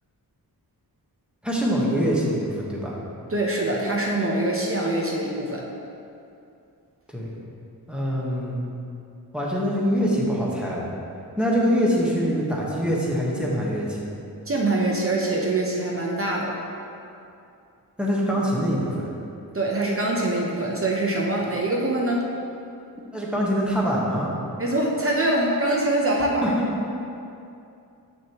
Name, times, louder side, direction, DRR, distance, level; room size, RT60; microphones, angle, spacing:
voice 1, 1.4-2.9 7.1-7.3 7.9-8.7 9.3-10.9 11.4-14.1 18.0-19.0 23.1-24.3 26.4-26.7, equal, 5° right, -5 dB, 1.2 m, -24 dB
voice 2, 3.3-5.6 14.5-16.5 19.5-22.3 24.6-26.5, right 2 dB, 35° right, -2 dB, 0.7 m, -24 dB
7.2 x 6.5 x 3.0 m, 2.6 s
wide cardioid pair, 115°, 38 cm